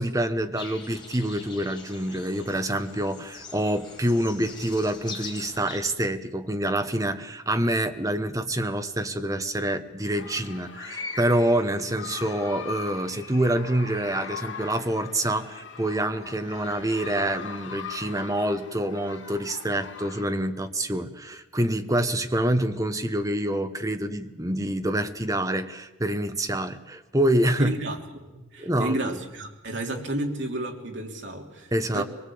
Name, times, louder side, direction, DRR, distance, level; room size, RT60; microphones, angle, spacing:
voice 1, 0.0-27.8 28.6-29.2 31.7-32.0, right 1 dB, 20° right, 8 dB, 1.2 m, -26 dB
sound 1, 0.6-5.8, left 4 dB, 25° left, 4.4 m, -42 dB
sound 2, 10.1-20.6, left 6 dB, 75° left, 2.7 m, -40 dB
voice 2, 27.6-32.0, right 1 dB, 70° right, 2 dB, 3.2 m, -32 dB
23.5 x 20.0 x 8.7 m, 1.0 s
head